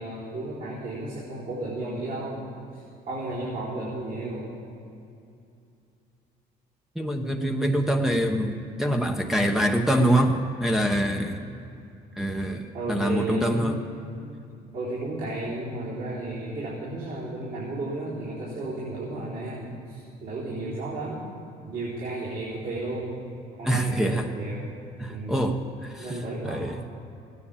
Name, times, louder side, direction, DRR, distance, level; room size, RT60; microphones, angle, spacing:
voice 1, 0.0-2.5 2.7-4.5 12.7-13.8 14.7-21.3 21.6-23.2 23.6-24.7 25.1-25.4 26.0-26.7, right 2 dB, 60° right, -9 dB, 4.2 m, -33 dB
voice 2, 6.9-11.4 12.2-13.7 23.6-24.3 25.0-26.2 26.4-26.8, right 1 dB, ahead, 1 dB, 1.0 m, -25 dB
15.5 x 9.9 x 7.2 m, 2.6 s
cardioid pair, 110°, 17 cm